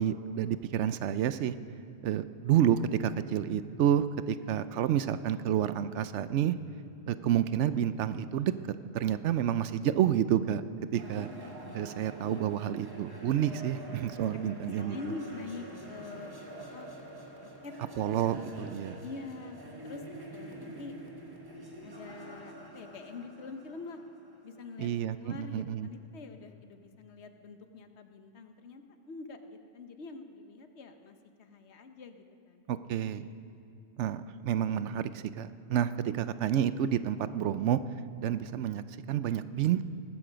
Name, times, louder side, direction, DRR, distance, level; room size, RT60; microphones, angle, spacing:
voice 1, 0.0-1.5 2.0-6.6 7.1-8.5 8.9-10.6 10.9-11.3 11.7-15.0 18.0-19.0 24.8-25.9 32.7-33.3 34.0-37.8 38.2-39.8, right 10 dB, 85° right, 13 dB, 0.9 m, -29 dB
sound 1, 11.0-25.1, right 1 dB, 20° right, 1.5 m, -46 dB
voice 2, 11.6-12.1 14.3-16.3 16.7-16.9 17.4-17.7 19.0-20.0 20.3-21.0 21.8-24.0 24.4-32.6, left 3 dB, 70° left, 7 dB, 1.2 m, -45 dB
18.5 x 14.5 x 5.1 m, 2.5 s
omnidirectional pair, 1.2 m